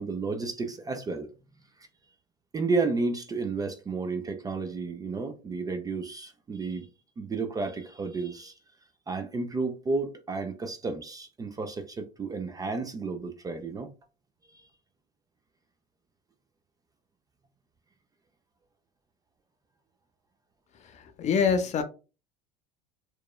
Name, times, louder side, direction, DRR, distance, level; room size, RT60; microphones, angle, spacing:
voice 1, 0.0-1.3 1.8-1.9 2.5-6.9 7.2-8.6 9.1-13.9 14.5-14.7, right 3 dB, 20° right, 0.4 m, -32 dB
voice 2, 20.7-21.8, left 6 dB, 35° left, 0.5 m, -26 dB
2.9 x 2.1 x 2.2 m
hypercardioid pair, 85°, 20 cm